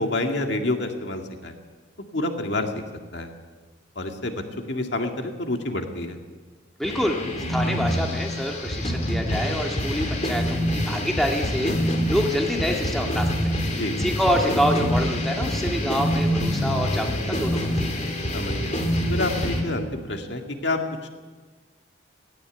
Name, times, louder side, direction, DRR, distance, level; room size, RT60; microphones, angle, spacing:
voice 1, 0.0-1.5 2.1-2.7 3.1-3.3 4.0-6.2 13.7-14.0 18.3-18.8 19.1-21.1, left 2 dB, 60° left, 4 dB, 2.0 m, -28 dB
sound 1, 6.8-19.6, equal, 35° left, 3.1 m, -26 dB
voice 2, 6.8-7.2 7.5-17.9, equal, ahead, 1 dB, 1.9 m, -27 dB
18.0 x 16.0 x 9.1 m, 1.4 s
head